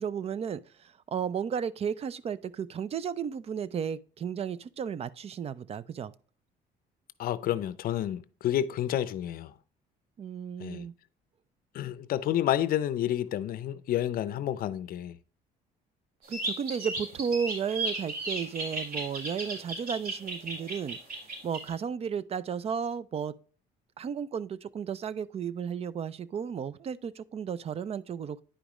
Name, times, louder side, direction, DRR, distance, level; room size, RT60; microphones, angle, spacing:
voice 1, 0.0-6.1 10.2-10.9 16.3-21.0 21.4-23.3 24.0-28.4, right 7 dB, 35° right, 0.5 m, -34 dB
voice 2, 7.2-9.5 10.6-10.8 11.7-15.2, left 11 dB, 60° left, 0.5 m, -30 dB
sound 1, 16.2-21.7, right 2 dB, 55° right, 4.2 m, -35 dB
10.0 x 5.0 x 3.0 m
cardioid pair, 110°, 17 cm